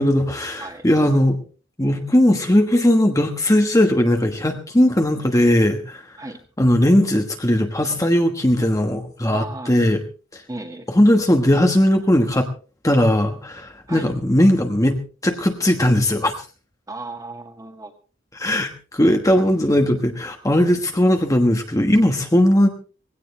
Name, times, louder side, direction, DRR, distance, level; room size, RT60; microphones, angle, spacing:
voice 1, 0.0-1.4 1.8-6.0 6.6-10.0 10.3-10.4 10.9-12.5 12.8-16.3 18.4-22.7, left 1 dB, 15° left, 4 dB, 1.3 m, -18 dB
voice 2, 9.3-9.8 10.5-10.9 13.9-14.1 16.9-17.9, right 2 dB, 20° right, 5 dB, 1.8 m, -35 dB
19.0 x 16.5 x 3.3 m, 0.36 s
head